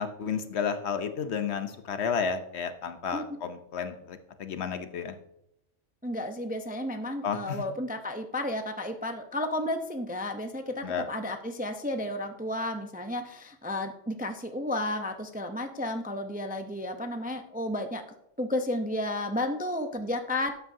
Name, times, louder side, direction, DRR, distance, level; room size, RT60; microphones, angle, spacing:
voice 1, 0.0-5.2 7.2-7.6 10.8-11.1, left 6 dB, 65° left, 9 dB, 1.0 m, -32 dB
voice 2, 6.0-18.0 18.4-20.6, left 1 dB, 10° right, 6 dB, 0.5 m, -32 dB
12.5 x 8.5 x 2.7 m, 0.81 s
omnidirectional pair, 1.3 m